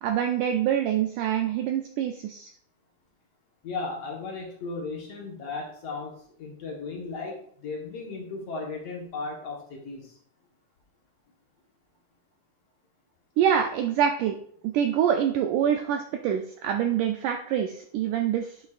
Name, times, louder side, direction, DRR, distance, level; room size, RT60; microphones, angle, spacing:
voice 1, 0.0-2.5 13.4-14.4 14.6-18.6, right 9 dB, 90° right, 5 dB, 1.8 m, -25 dB
voice 2, 3.6-10.2, left 3 dB, 60° left, -1 dB, 1.8 m, -36 dB
9.2 x 7.2 x 2.5 m, 0.63 s
omnidirectional pair, 4.3 m